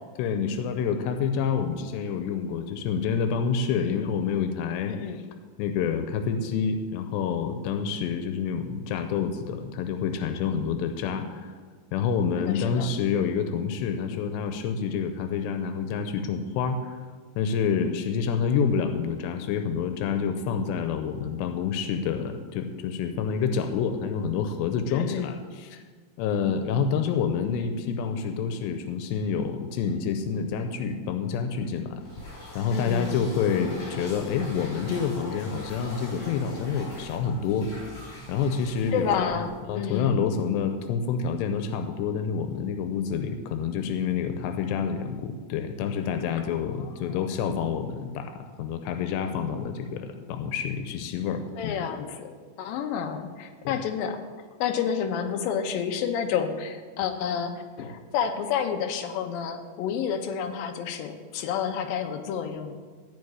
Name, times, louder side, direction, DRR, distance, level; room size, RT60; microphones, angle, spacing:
voice 1, 0.2-4.9 5.6-11.5 11.9-17.0 17.4-25.8 26.2-32.0 32.3-37.7 38.3-51.9 53.6-53.8, left 6 dB, 90° left, 7 dB, 3.0 m, -28 dB
voice 2, 12.5-12.9 24.9-25.3 32.7-33.2 38.9-40.3 51.6-54.2 54.6-62.8, left 7 dB, 70° left, 5 dB, 2.4 m, -30 dB
sound 1, 32.0-39.6, left 1 dB, 40° left, 5.3 m, -42 dB
14.5 x 5.2 x 9.5 m, 1.5 s
omnidirectional pair, 4.8 m